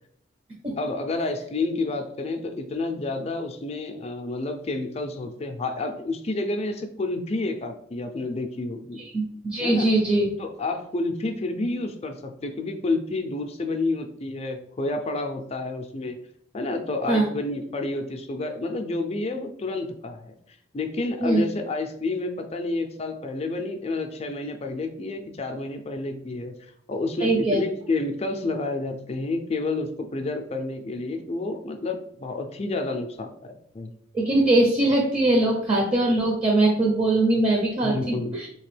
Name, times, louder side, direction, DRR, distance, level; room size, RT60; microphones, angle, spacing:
voice 1, 0.8-9.0 9.6-9.9 10.4-16.2 16.5-20.3 20.7-26.5 26.9-33.9 37.8-38.3, left 2 dB, 30° left, 5 dB, 0.4 m, -29 dB
voice 2, 9.1-10.3 17.1-17.3 21.2-21.4 27.2-27.6 34.1-38.5, right 2 dB, 25° right, -1 dB, 0.6 m, -21 dB
3.7 x 2.9 x 3.2 m, 0.68 s
head